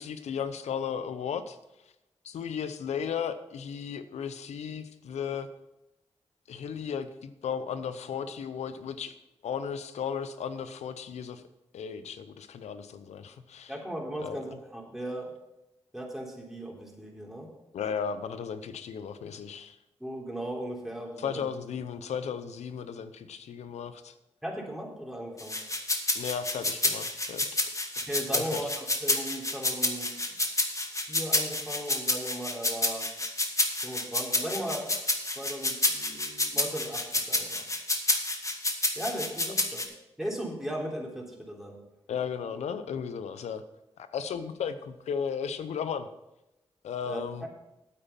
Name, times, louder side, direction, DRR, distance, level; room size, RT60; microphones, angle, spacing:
voice 1, 0.0-1.6 2.2-5.5 6.5-9.2 9.4-11.4 11.7-13.7 14.2-14.4 17.7-19.8 21.2-24.2 26.1-27.5 28.3-28.7 42.1-43.6 44.0-46.1 46.8-47.5, left 7 dB, 90° left, 11 dB, 0.7 m, -35 dB
voice 2, 13.7-15.3 15.9-17.5 20.0-21.4 24.4-25.6 28.0-30.5 31.1-33.1 33.8-34.9 35.4-37.6 39.0-39.8 40.2-41.8 47.1-47.2, right 1 dB, 5° right, -1 dB, 3.5 m, -37 dB
sound 1, 25.4-39.8, left 2 dB, 30° left, 1.8 m, -29 dB
8.7 x 8.6 x 5.8 m, 0.90 s
supercardioid pair, 40°, 11 cm